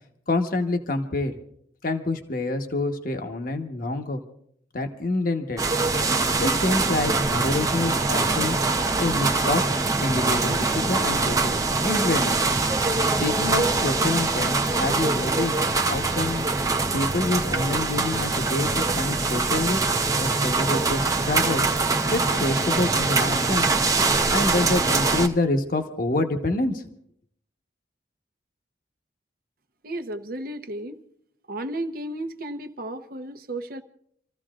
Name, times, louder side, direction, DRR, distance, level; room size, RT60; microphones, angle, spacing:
voice 1, 0.3-1.3 1.8-4.2 4.7-5.6 6.4-8.6 9.0-9.6 10.0-12.4 13.2-15.6 15.9-16.5 16.9-19.8 20.2-21.7 22.1-23.7 24.3-26.8, left 2 dB, 45° left, 1.2 m, -27 dB
sound 1, 5.6-25.3, right 3 dB, 20° right, 0.7 m, -23 dB
voice 2, 29.8-31.0 31.5-33.8, right 1 dB, 50° right, 0.9 m, -33 dB
29.0 x 14.5 x 2.5 m
head